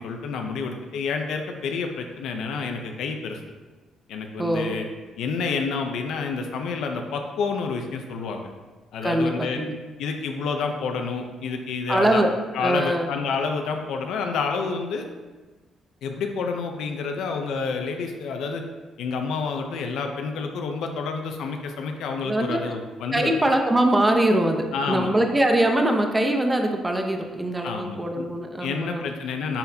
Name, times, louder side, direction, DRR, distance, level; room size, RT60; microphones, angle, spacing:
voice 1, 0.0-3.4 4.1-4.8 5.2-8.5 8.9-9.6 10.0-12.2 12.5-15.1 16.0-18.6 19.0-23.3 24.7-25.1 27.6-28.2 28.6-29.6, left 5 dB, 80° left, 4 dB, 0.7 m, -29 dB
voice 2, 4.4-4.8 9.0-9.7 11.9-12.3 12.6-13.1 22.2-22.7 23.1-29.1, right 1 dB, 15° right, 3 dB, 0.8 m, -22 dB
9.9 x 4.0 x 2.8 m, 1.3 s
cardioid pair, 90°, 0 cm